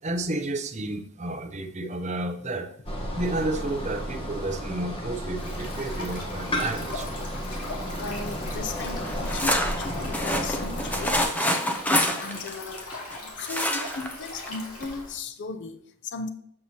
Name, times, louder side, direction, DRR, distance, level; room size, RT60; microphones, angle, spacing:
voice 1, 0.0-2.7 3.1-7.1, right 2 dB, 30° right, 5 dB, 0.7 m, -31 dB
sound 1, 2.9-11.2, equal, 25° left, 1.1 m, -33 dB
Stream, 5.3-15.1, left 2 dB, 80° left, 2.3 m, -40 dB
voice 2, 7.9-11.7 12.0-16.3, left 4 dB, 55° left, 8 dB, 0.5 m, -37 dB
sound 2, 8.8-13.2 13.5-14.1 14.5-14.6 14.8-14.9, equal, 5° left, 0.6 m, -26 dB
7.7 x 7.2 x 2.8 m, 0.66 s
head